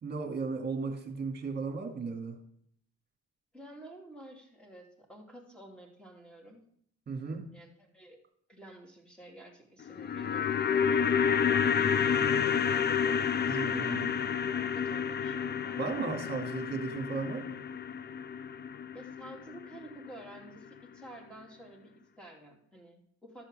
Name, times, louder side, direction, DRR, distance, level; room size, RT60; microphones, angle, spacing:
voice 1, 0.0-2.4 7.1-7.5 13.5-14.2 15.8-17.6, right 4 dB, 35° right, 4 dB, 2.2 m, -35 dB
voice 2, 3.5-6.6 7.5-8.2 8.5-11.5 12.3-15.8 18.9-23.5, right 1 dB, 5° left, -1 dB, 2.6 m, -51 dB
sound 1, 9.8-20.1 20.3-20.4, left 7 dB, 35° left, 0.5 m, -30 dB
12.0 x 4.4 x 7.5 m, 0.67 s
cardioid pair, 90°, 30 cm